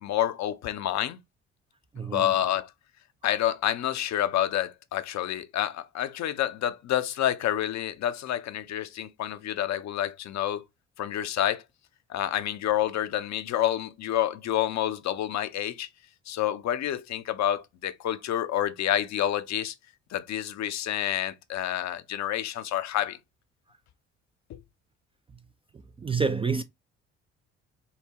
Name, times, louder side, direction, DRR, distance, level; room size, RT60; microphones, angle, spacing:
voice 1, 0.0-1.2 2.0-2.7 3.2-10.6 11.0-11.6 12.1-15.9 16.3-19.7 20.1-23.2 24.5-24.6, left 11 dB, 50° left, 0.6 m, -28 dB
voice 2, 1.9-2.3 26.0-26.6, right 5 dB, 15° right, 0.3 m, -27 dB
5.6 x 2.1 x 2.8 m
hypercardioid pair, 55°, 35 cm